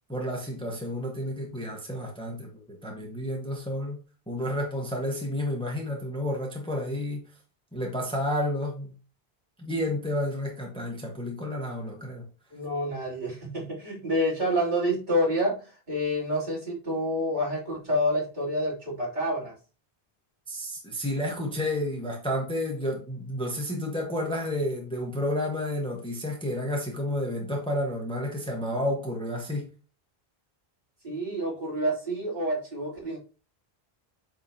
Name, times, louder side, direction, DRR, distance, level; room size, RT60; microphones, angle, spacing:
voice 1, 0.1-4.0 4.3-7.2 7.7-8.9 9.6-12.2 20.5-29.7, left 1 dB, 5° left, 1.3 m, -31 dB
voice 2, 12.5-19.5 31.0-33.2, equal, 45° right, 3.2 m, -28 dB
9.2 x 3.7 x 2.8 m
omnidirectional pair, 1.0 m